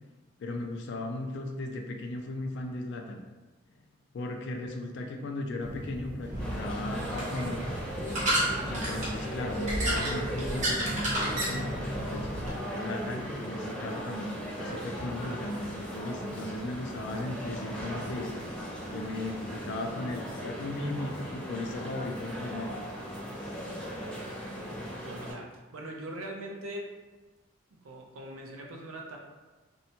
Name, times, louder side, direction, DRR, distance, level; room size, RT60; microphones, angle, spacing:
voice 1, 0.4-3.2 4.1-7.6 8.7-12.3 12.7-18.3 18.9-22.7, left 2 dB, 60° left, 3 dB, 0.3 m, -36 dB
sound 1, 5.6-12.5, right 1 dB, 35° right, 0.8 m, -32 dB
sound 2, 6.4-25.3, equal, 5° left, 0.6 m, -38 dB
voice 2, 25.0-26.9 27.8-29.2, right 1 dB, 80° right, 0 dB, 0.5 m, -41 dB
2.6 x 2.1 x 2.8 m, 1.2 s
head